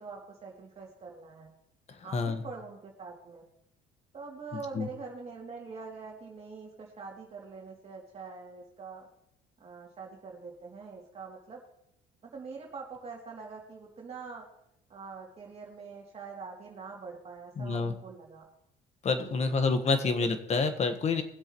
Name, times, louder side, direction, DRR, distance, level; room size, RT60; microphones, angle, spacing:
voice 1, 0.0-1.5 2.0-3.4 4.1-9.1 9.6-11.6 12.2-14.5 14.9-18.5 19.3-19.5 20.0-20.1, right 4 dB, 35° right, -2 dB, 2.8 m, -44 dB
voice 2, 2.1-2.4 4.7-4.9 17.6-17.9 19.0-21.2, left 4 dB, 40° left, 8 dB, 1.4 m, -28 dB
21.0 x 7.8 x 3.1 m, 0.76 s
cardioid pair, 110°, 17 cm